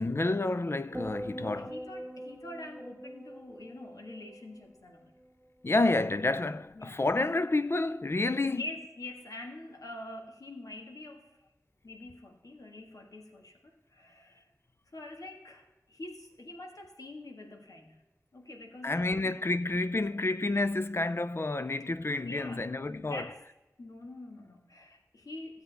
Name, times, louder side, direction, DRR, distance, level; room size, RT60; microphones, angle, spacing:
voice 1, 0.0-1.7 5.6-8.6 18.8-23.3, left 2 dB, 45° left, 0.4 m, -29 dB
sound 1, 0.9-5.3 5.6-6.1, equal, 20° right, 1.1 m, -44 dB
voice 2, 1.3-5.1 6.7-7.1 8.4-11.4 11.8-14.5 14.9-18.0 18.3-19.1 22.2-23.4 23.8-25.6, left 2 dB, 80° left, 1.6 m, -45 dB
15.5 x 7.9 x 3.4 m
wide cardioid pair, 55°, 6 cm